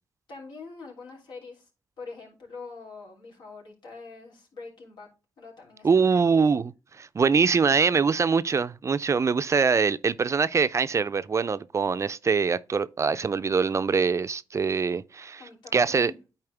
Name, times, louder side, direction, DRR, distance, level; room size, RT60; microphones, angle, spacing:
voice 1, 0.3-1.7 2.0-5.1 5.4-6.2 15.4-16.2, left 4 dB, 75° left, 3.2 m, -44 dB
voice 2, 5.8-15.4 15.7-16.1, right 5 dB, 40° right, 0.4 m, -23 dB
9.6 x 4.3 x 3.3 m
cardioid pair, 70°, 8 cm